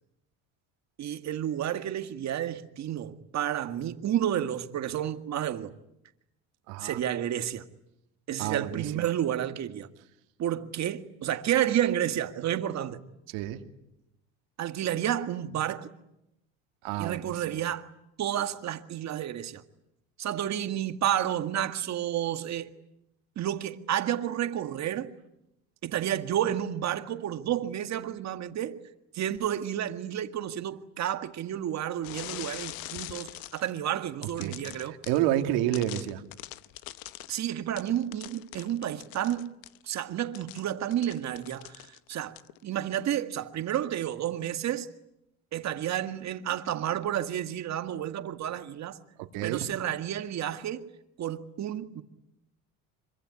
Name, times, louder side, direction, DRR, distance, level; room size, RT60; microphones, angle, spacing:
voice 1, 1.0-5.7 6.8-7.6 8.3-9.9 10.4-13.0 14.6-15.9 17.0-17.9 18.2-19.6 20.2-22.7 23.4-25.1 25.8-28.8 29.1-35.0 37.3-39.5 39.8-42.4 42.6-44.9 45.5-49.0 49.4-50.9 51.2-52.0, right 11 dB, 45° right, 1.9 m, -31 dB
voice 2, 6.7-7.0 8.4-9.1 13.3-13.6 16.8-17.6 34.4-34.6 35.1-36.2 49.3-49.7, right 13 dB, 80° right, 2.8 m, -29 dB
sound 1, 32.0-33.8 34.2-35.3 35.7-39.8 40.3-42.1 42.4-42.6, left 17 dB, 70° left, 1.1 m, -43 dB
25.5 x 24.0 x 9.8 m
cardioid pair, 115°, 37 cm